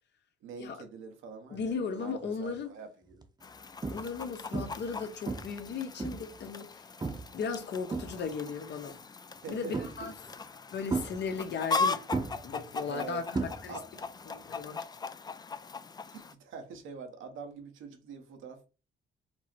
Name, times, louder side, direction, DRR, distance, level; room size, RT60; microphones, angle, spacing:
voice 1, 0.4-3.3 9.3-10.4 12.8-13.3 13.7-14.1 16.1-18.7, right 5 dB, 80° right, 1.1 m, -45 dB
voice 2, 1.5-2.7 3.9-6.8 7.3-9.0 9.5-10.1 10.7-12.0 12.4-13.8 14.3-14.8, left 5 dB, 60° left, 0.9 m, -36 dB
sound 1, 2.2-2.5 3.1-3.2 3.8-4.2 4.5-4.9 5.3-6.4 7.0-7.4 7.7-8.5 9.7-10.2 10.9-11.8 12.1-14.0 14.3-14.7 16.7-16.8, right 3 dB, 20° right, 0.8 m, -35 dB
Chicken rooster, 3.4-16.3, left 4 dB, 20° left, 0.3 m, -39 dB
4.5 x 2.1 x 4.4 m
cardioid pair, 90°, 20 cm